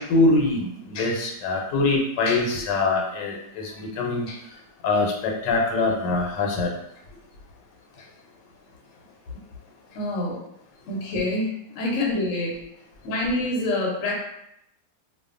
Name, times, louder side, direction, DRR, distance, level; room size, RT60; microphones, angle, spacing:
voice 1, 0.0-4.4 4.8-6.7, left 3 dB, 85° left, 0 dB, 1.2 m, -23 dB
voice 2, 9.9-10.4 10.9-12.5 13.0-14.1, left 2 dB, 60° left, -2 dB, 0.9 m, -26 dB
2.6 x 2.4 x 2.4 m, 0.77 s
omnidirectional pair, 1.9 m